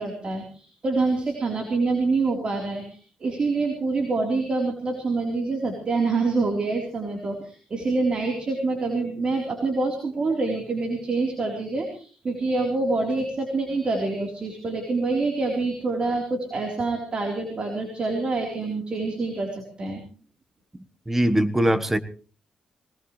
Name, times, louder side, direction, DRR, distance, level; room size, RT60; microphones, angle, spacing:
voice 1, 0.0-20.0, right 3 dB, 45° right, 2 dB, 3.9 m, -26 dB
voice 2, 21.1-22.0, right 1 dB, 10° right, 11 dB, 1.4 m, -21 dB
21.0 x 19.0 x 3.3 m, 0.41 s
cardioid pair, 100°, 2 cm